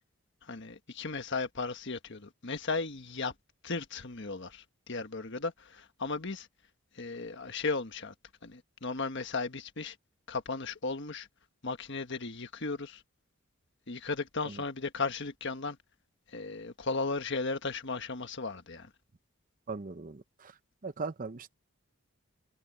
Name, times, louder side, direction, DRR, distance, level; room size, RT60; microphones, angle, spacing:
voice 1, 0.4-3.3 3.6-6.5 6.9-8.1 8.4-10.0 10.3-11.3 11.6-13.0 13.9-15.8 16.3-18.9, left 3 dB, 55° left, 1.5 m, -35 dB
voice 2, 19.7-20.5 20.8-21.6, right 4 dB, 40° right, 0.7 m, -39 dB
head